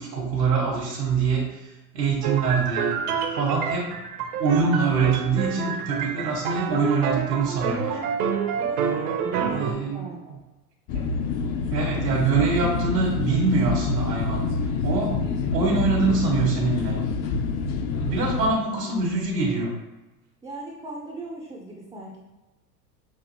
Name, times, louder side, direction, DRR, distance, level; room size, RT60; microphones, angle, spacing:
voice 1, 0.0-2.9 3.3-3.9 4.4-8.0 9.5-10.4 10.9-11.0 11.7-14.4 14.8-15.2 15.5-16.9 18.0-19.7, right 4 dB, 85° right, -4 dB, 1.3 m, -24 dB
sound 1, 2.2-9.7, right 6 dB, 65° right, 0.8 m, -28 dB
voice 2, 8.6-10.2 15.1-15.3 15.6-15.9 18.4-18.5 18.8-19.1 20.4-22.2, right 2 dB, 10° right, -2 dB, 0.4 m, -40 dB
sound 2, 10.9-18.5, left 4 dB, 45° left, 0.7 m, -27 dB
6.1 x 2.7 x 2.7 m, 1.1 s
hypercardioid pair, 85°, 48 cm